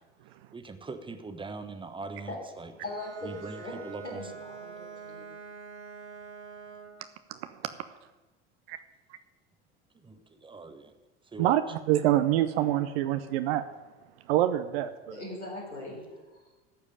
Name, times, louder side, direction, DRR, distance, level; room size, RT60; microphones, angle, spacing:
voice 1, 0.5-2.7 3.2-4.2 9.9-10.9 11.3-11.6, right 3 dB, 15° right, 8 dB, 1.1 m, -41 dB
voice 2, 2.8-3.8 4.0-5.3 15.1-16.5, left 2 dB, 90° left, -4 dB, 4.0 m, -40 dB
Bowed string instrument, 2.8-7.1, right 7 dB, 75° right, 2.2 m, -45 dB
voice 3, 11.9-13.7 14.3-15.2, right 13 dB, 60° right, 10 dB, 0.7 m, -25 dB
14.0 x 5.1 x 8.3 m, 1.2 s
figure-of-eight pair, 75°, 34 cm